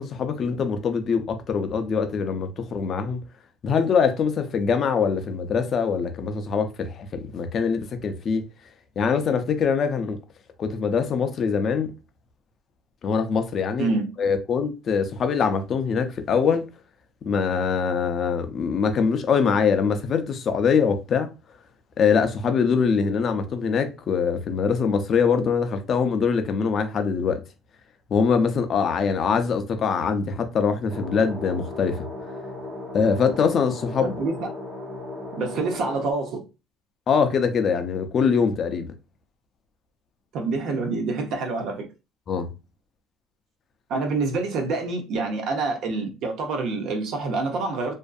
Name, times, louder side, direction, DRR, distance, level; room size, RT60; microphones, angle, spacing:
voice 1, 0.0-3.2 3.6-8.4 9.0-10.2 10.6-11.9 13.0-13.9 14.2-16.6 17.3-21.3 22.0-27.4 28.1-32.1 32.9-34.2 37.1-38.9 42.3-42.5, left 6 dB, 40° left, 0.4 m, -23 dB
voice 2, 13.8-14.1 34.0-34.5 35.3-36.4 40.3-41.9 43.9-47.9, right 3 dB, 60° right, 0.6 m, -27 dB
sound 1, 30.9-36.1, left 2 dB, 15° right, 0.5 m, -36 dB
2.6 x 2.4 x 2.2 m
cardioid pair, 135°, 0 cm